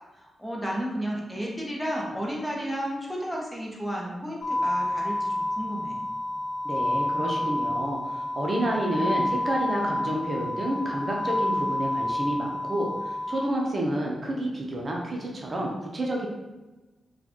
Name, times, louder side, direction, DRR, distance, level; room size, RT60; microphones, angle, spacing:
voice 1, 0.2-6.0, equal, 5° left, -3 dB, 0.9 m, -32 dB
sound 1, 4.4-13.5, left 1 dB, 55° left, 0.4 m, -29 dB
voice 2, 6.6-16.3, right 1 dB, 45° right, -1 dB, 0.7 m, -29 dB
3.9 x 2.3 x 2.9 m, 1.1 s
cardioid pair, 50°, 0 cm